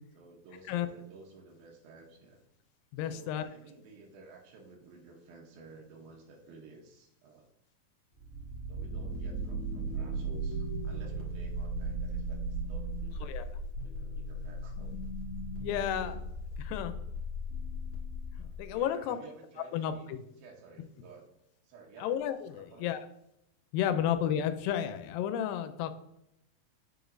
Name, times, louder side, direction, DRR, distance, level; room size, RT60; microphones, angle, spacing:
voice 1, 0.1-2.4 3.0-7.5 8.7-13.3 13.6-15.0 15.8-16.2 18.4-20.1 20.4-21.3 21.6-22.1 22.5-23.0, right 4 dB, 85° right, -1 dB, 2.8 m, -54 dB
voice 2, 2.9-3.5 13.2-13.5 15.6-16.2 16.6-16.9 18.4-19.2 19.7-20.2 22.0-23.0 23.7-25.9, left 10 dB, 85° left, 10 dB, 2.3 m, -32 dB
sound 1, 8.2-18.8, right 1 dB, 45° left, 2.2 m, -37 dB
7.3 x 5.0 x 2.5 m, 0.81 s
omnidirectional pair, 4.1 m